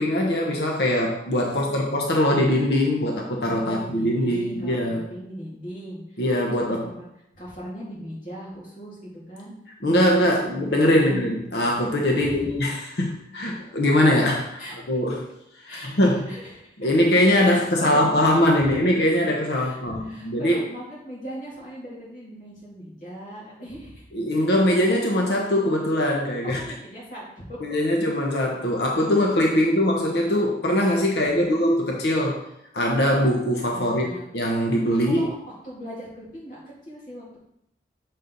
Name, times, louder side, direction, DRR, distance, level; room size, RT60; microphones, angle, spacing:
voice 1, 0.0-5.1 6.2-6.8 9.8-15.2 15.6-16.3 16.8-20.6 24.1-26.6 27.6-32.4 32.7-34.0 34.3-35.3, left 1 dB, 70° left, -1 dB, 0.9 m, -22 dB
voice 2, 1.5-1.9 3.6-7.1 7.3-9.5 10.4-11.2 12.2-12.4 14.6-14.7 15.7-16.0 16.2-17.0 17.4-18.7 19.5-24.1 26.6-27.6 31.1-31.7 33.7-34.3 35.0-35.3 35.6-37.4, equal, 50° left, -7 dB, 2.6 m, -39 dB
6.5 x 4.2 x 3.9 m, 0.78 s
head